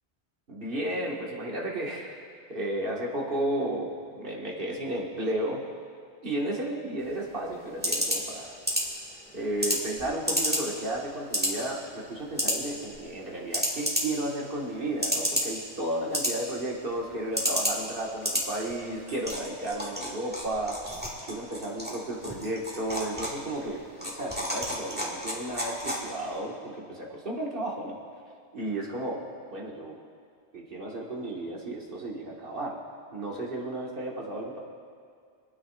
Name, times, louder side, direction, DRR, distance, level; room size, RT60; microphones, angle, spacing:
voice 1, 0.5-5.6 6.2-8.5 9.3-20.8 21.2-28.0 28.5-29.2 29.5-30.0 30.5-32.8 33.1-34.6, right 1 dB, 55° right, -3 dB, 2.0 m, -33 dB
sound 1, 7.0-26.4, equal, 10° right, 2.0 m, -33 dB
28.5 x 9.6 x 2.5 m, 2.2 s
omnidirectional pair, 1.1 m